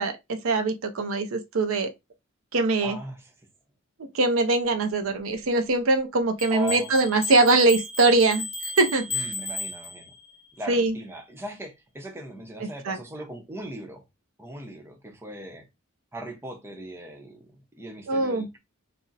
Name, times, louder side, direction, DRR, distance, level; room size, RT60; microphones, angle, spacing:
voice 1, 0.0-1.9 2.5-3.0 4.1-9.3 10.7-10.9 12.6-13.0 18.1-18.5, right 2 dB, 70° right, 0.5 m, -22 dB
voice 2, 2.8-3.3 6.5-7.0 9.1-10.1 10.6-14.0 14.4-15.7 16.1-18.6, right 1 dB, 10° right, 0.6 m, -39 dB
sound 1, 6.4-10.4, left 3 dB, 30° left, 0.9 m, -34 dB
2.5 x 2.0 x 3.9 m
head